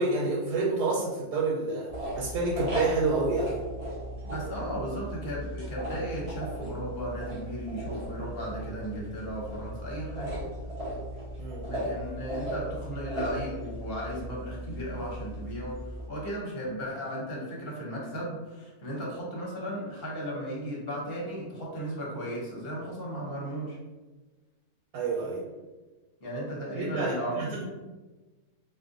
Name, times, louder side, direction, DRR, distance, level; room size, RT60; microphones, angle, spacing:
voice 1, 0.0-3.6 11.4-11.7 24.9-25.4 26.8-27.6, right 3 dB, 85° right, -3 dB, 1.1 m, -28 dB
sound 1, 1.9-16.1, right 1 dB, 60° right, 0.3 m, -37 dB
voice 2, 4.2-10.4 11.7-15.8 16.1-23.8 26.2-27.6, equal, 45° left, -4 dB, 0.9 m, -35 dB
2.6 x 2.4 x 3.7 m, 1.2 s
omnidirectional pair, 1.7 m